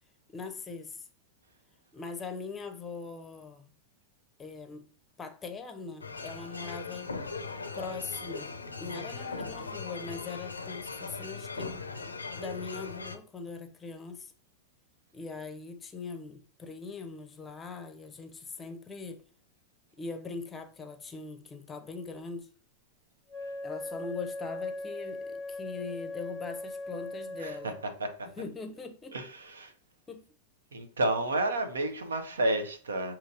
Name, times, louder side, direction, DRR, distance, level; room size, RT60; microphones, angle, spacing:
voice 1, 0.3-1.1 1.9-3.7 4.4-4.8 5.2-7.1 7.7-11.9 12.3-14.3 15.1-19.2 20.0-22.5 23.6-27.8 28.4-29.2 30.1-30.2, left 4 dB, 20° left, 0.6 m, -41 dB
sound 1, 6.0-13.2, left 4 dB, 80° left, 0.4 m, -39 dB
Wind instrument woodwind instrument, 23.3-27.9, left 2 dB, 10° right, 0.9 m, -39 dB
voice 2, 27.4-27.7 28.0-28.3 29.1-29.7 30.7-33.1, right 1 dB, 70° right, 0.7 m, -31 dB
6.4 x 2.9 x 2.5 m
figure-of-eight pair, 90°, 0 cm